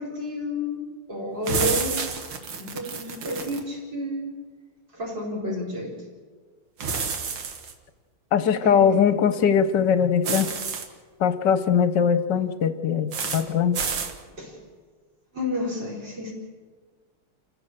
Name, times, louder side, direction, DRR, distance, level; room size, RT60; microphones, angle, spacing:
voice 1, 0.0-2.1 2.6-4.4 4.9-6.0 8.6-9.0 14.4-14.6 15.3-16.3, left 1 dB, 50° right, -2 dB, 5.0 m, -30 dB
sound 1, 1.4-3.6 6.8-7.7 10.2-10.9 13.1-13.4 13.7-14.1, right 5 dB, 65° right, 2.4 m, -29 dB
voice 2, 8.3-10.5 11.2-13.8, left 7 dB, 60° left, 12 dB, 1.4 m, -21 dB
29.0 x 15.5 x 6.8 m, 1.5 s
omnidirectional pair, 2.4 m